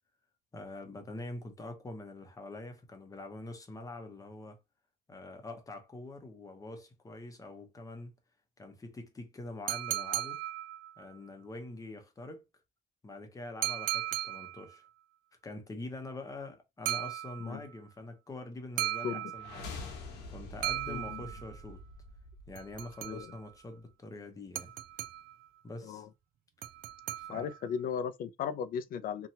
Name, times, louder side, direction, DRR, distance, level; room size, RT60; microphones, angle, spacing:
voice 1, 0.5-4.6 5.1-8.1 8.6-10.4 11.0-12.4 13.0-14.9 15.4-19.7 20.3-21.8 22.5-24.7 25.6-26.1 27.2-27.5, left 2 dB, 20° left, 0.8 m, -45 dB
sound 1, 9.7-11.2 13.6-14.8 16.8-17.7 18.8-19.8 20.6-21.6 22.5-23.5 24.5-25.5 26.6-27.7, right 14 dB, 60° right, 0.4 m, -37 dB
sound 2, 19.3-23.3, left 2 dB, 85° left, 1.0 m, -46 dB
voice 2, 20.9-21.2 23.1-23.3 25.8-26.1 27.3-29.3, left 7 dB, 55° left, 0.4 m, -36 dB
2.8 x 2.3 x 2.7 m
cardioid pair, 110°, 17 cm